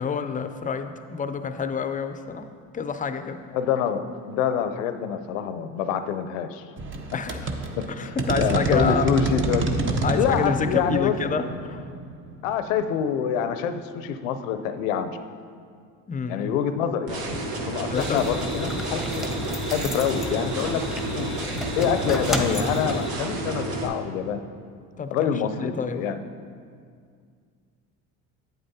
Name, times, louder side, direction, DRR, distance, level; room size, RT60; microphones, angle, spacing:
voice 1, 0.0-3.4 7.1-7.4 7.9-9.1 10.0-11.9 16.1-16.6 17.9-18.3 19.9-20.0 25.0-26.0, left 5 dB, 20° left, 9 dB, 0.4 m, -28 dB
voice 2, 3.5-6.6 7.8-9.7 10.1-11.1 12.4-15.1 16.3-17.3 17.7-19.3 19.7-20.8 21.2-21.4 21.8-24.4 25.1-26.2, left 8 dB, 90° left, 10 dB, 0.5 m, -26 dB
sound 1, 6.8-13.2, right 2 dB, 30° right, 0.9 m, -28 dB
sound 2, 17.1-23.9, right 2 dB, 65° right, 1.2 m, -30 dB
sound 3, 17.9-23.1, left 1 dB, ahead, 0.9 m, -32 dB
8.7 x 7.9 x 2.7 m, 2.1 s
hypercardioid pair, 70°, 38 cm